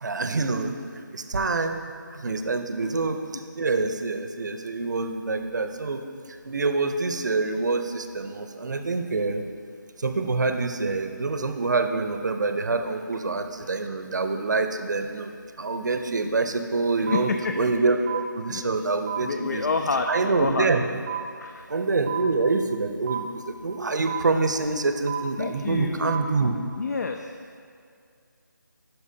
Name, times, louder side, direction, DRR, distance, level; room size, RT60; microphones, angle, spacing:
voice 1, 0.0-0.7 1.1-1.8 2.1-6.0 6.4-9.5 10.0-15.3 15.6-17.3 17.5-19.7 20.1-20.8 21.7-26.6, right 3 dB, 60° right, 7 dB, 0.6 m, -26 dB
voice 2, 17.1-17.5 18.5-18.6 19.2-20.7 21.4-21.6 25.4-26.4 26.8-27.3, left 4 dB, 55° left, 5 dB, 0.4 m, -28 dB
sound 1, 17.1-17.2 18.1-18.2 19.1-19.2 20.1-20.2 21.1-21.2 22.1-22.2 23.1-23.2 24.1-24.2 25.1-25.2 26.1-26.2, right 10 dB, 15° right, 0.8 m, -30 dB
12.5 x 5.9 x 2.7 m, 2.2 s
figure-of-eight pair, 160°, 11 cm